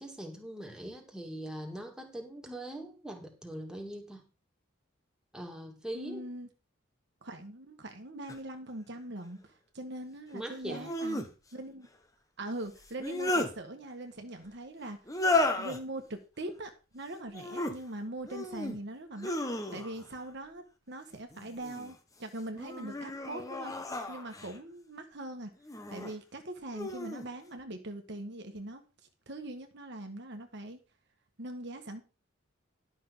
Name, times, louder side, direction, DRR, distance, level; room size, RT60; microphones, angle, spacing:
voice 1, 0.0-4.3 5.3-6.3 10.3-10.9, right 1 dB, 5° right, 2.3 m, -42 dB
voice 2, 5.9-6.5 7.2-11.3 11.5-11.9 12.4-15.0 15.6-19.3 19.7-23.7 24.1-25.5 25.9-28.8 29.3-30.8 31.4-32.0, right 1 dB, 55° right, 1.5 m, -41 dB
sound 1, 8.3-8.4 10.7-11.3 12.8-13.5 15.1-15.8 17.3-17.8 18.3-18.8 19.2-20.1 21.3-21.9 22.5-24.6 25.6-26.1 26.7-27.3, left 2 dB, 15° left, 1.3 m, -33 dB
11.5 x 6.5 x 5.5 m
head